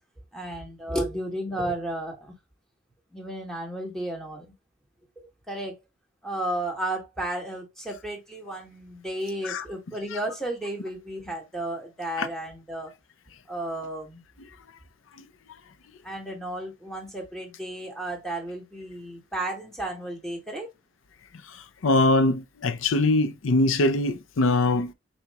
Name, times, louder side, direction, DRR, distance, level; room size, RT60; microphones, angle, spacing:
voice 1, 0.3-2.3 3.1-4.5 5.5-5.7 6.2-12.9 13.5-14.2 16.0-20.7, right 1 dB, ahead, 1.4 m, -33 dB
voice 2, 21.8-24.9, left 2 dB, 80° left, 0.5 m, -22 dB
4.2 x 2.9 x 3.5 m
head